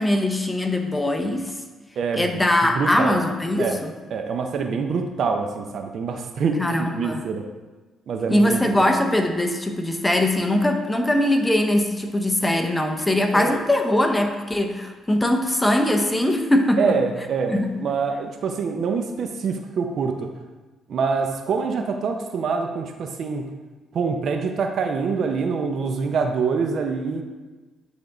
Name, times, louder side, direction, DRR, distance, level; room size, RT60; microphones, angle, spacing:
voice 1, 0.0-1.5 2.1-3.9 6.6-7.2 8.3-17.0 17.5-17.8, left 1 dB, 10° left, 5 dB, 0.7 m, -21 dB
voice 2, 2.0-2.4 2.7-3.2 3.6-3.8 4.1-7.4 8.1-8.6 13.3-13.6 16.8-20.3 20.9-23.4 23.9-27.2, right 5 dB, 60° right, 5 dB, 0.6 m, -25 dB
9.3 x 3.5 x 3.9 m, 1.3 s
cardioid pair, 90°, 0 cm